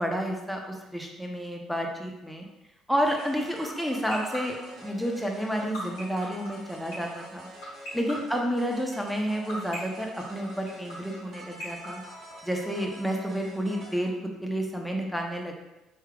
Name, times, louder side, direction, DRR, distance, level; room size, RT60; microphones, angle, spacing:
voice 1, 0.0-2.4 2.9-7.5 7.9-12.0 12.4-15.5, equal, ahead, 1 dB, 0.8 m, -30 dB
sound 1, 3.0-14.1, right 1 dB, 40° right, 1.1 m, -47 dB
sound 2, 3.2-12.8, left 1 dB, 70° left, 1.4 m, -39 dB
4.5 x 3.2 x 2.4 m, 1.0 s
hypercardioid pair, 55°, 0 cm